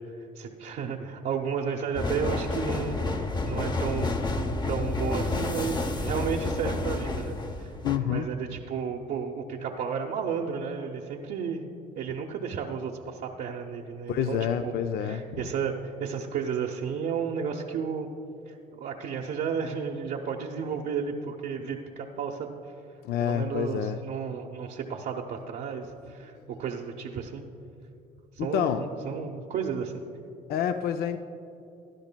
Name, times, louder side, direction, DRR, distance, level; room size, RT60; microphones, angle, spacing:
voice 1, 0.4-4.2 4.7-7.7 8.1-11.6 11.9-14.7 15.0-18.1 18.5-22.5 23.2-27.4 28.3-29.9, right 6 dB, 65° right, -1 dB, 0.8 m, -33 dB
sound 1, 1.9-8.0, left 2 dB, 25° left, 0.7 m, -30 dB
voice 2, 7.8-8.3 14.1-15.2 23.0-24.0 28.4-28.8 30.5-31.2, left 9 dB, 65° left, 8 dB, 0.5 m, -28 dB
16.5 x 11.5 x 2.2 m, 2.8 s
cardioid pair, 110°, 17 cm